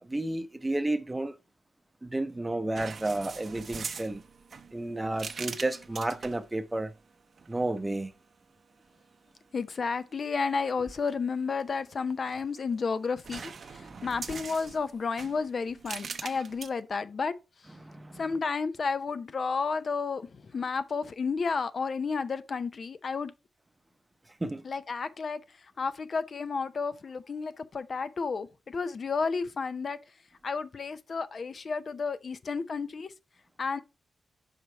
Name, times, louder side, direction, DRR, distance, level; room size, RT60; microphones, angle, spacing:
voice 1, 0.0-1.4 2.0-4.2 4.7-6.9 7.5-8.1 13.8-14.1 17.8-18.2 24.4-24.6, right 2 dB, 15° right, 0.7 m, -32 dB
sound 1, 2.8-6.5 7.4-7.8 12.0-12.8 13.2-16.7, right 5 dB, 55° right, 0.7 m, -42 dB
voice 2, 9.5-17.3 18.2-23.3 24.6-25.4 25.8-30.0 30.4-33.1 33.6-33.8, left 5 dB, 50° left, 0.5 m, -32 dB
5.5 x 5.0 x 4.3 m
cardioid pair, 90°, 0 cm